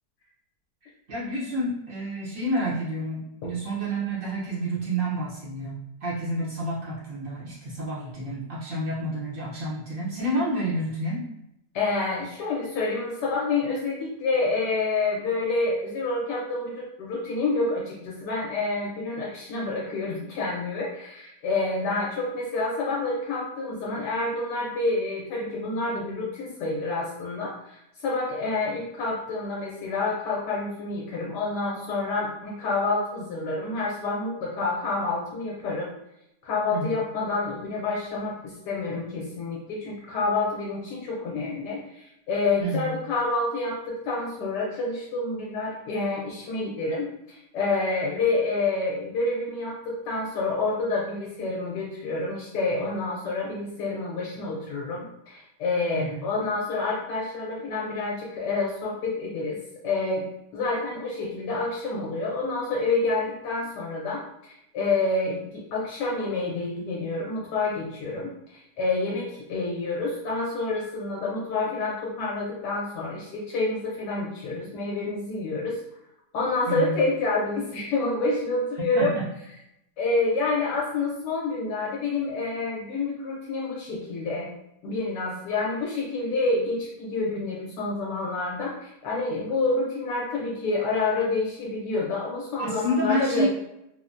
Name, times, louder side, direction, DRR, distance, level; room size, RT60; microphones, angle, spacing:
voice 1, 0.8-11.2 36.7-37.0 42.6-43.0 55.9-56.3 76.7-77.0 78.9-79.3 92.6-93.5, right 1 dB, 65° right, -7 dB, 0.5 m, -29 dB
voice 2, 11.7-35.9 36.4-59.6 59.8-60.3 60.5-75.8 76.3-79.1 80.0-84.5 84.8-93.5, left 3 dB, 75° left, -4 dB, 1.1 m, -28 dB
3.3 x 2.1 x 2.5 m, 0.83 s
omnidirectional pair, 1.9 m